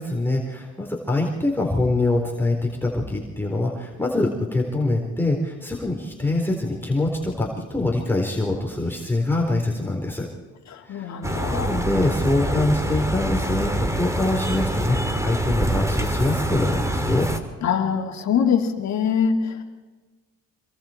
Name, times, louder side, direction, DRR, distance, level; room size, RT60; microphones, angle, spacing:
voice 1, 0.0-10.3 10.8-11.2 11.5-17.3, left 2 dB, 5° left, -2 dB, 4.1 m, -24 dB
voice 2, 10.7-11.9 17.6-19.6, left 7 dB, 65° left, 3 dB, 2.9 m, -24 dB
sound 1, 11.2-17.4, right 1 dB, 10° right, 2.6 m, -25 dB
27.0 x 23.0 x 4.5 m, 1.3 s
cardioid pair, 90°, 30 cm